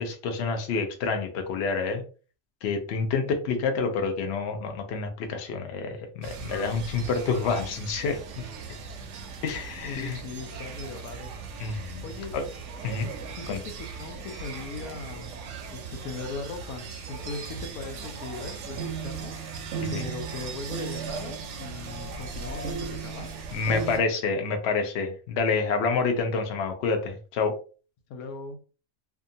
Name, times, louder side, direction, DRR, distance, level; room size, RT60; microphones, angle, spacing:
voice 1, 0.0-2.0 2.6-8.2 9.4-10.2 11.6-12.0 12.3-12.4 12.8-13.1 13.5-13.6 19.8-20.0 23.5-27.6, left 4 dB, 60° left, 5 dB, 0.7 m, -28 dB
sound 1, 6.2-24.0, right 5 dB, 65° right, 0.8 m, -37 dB
voice 2, 10.0-11.3 12.0-12.4 13.4-15.4 15.7-19.6 19.9-23.3 28.1-28.6, left 3 dB, 80° left, 5 dB, 1.1 m, -39 dB
2.7 x 2.4 x 2.6 m, 0.36 s
omnidirectional pair, 1.5 m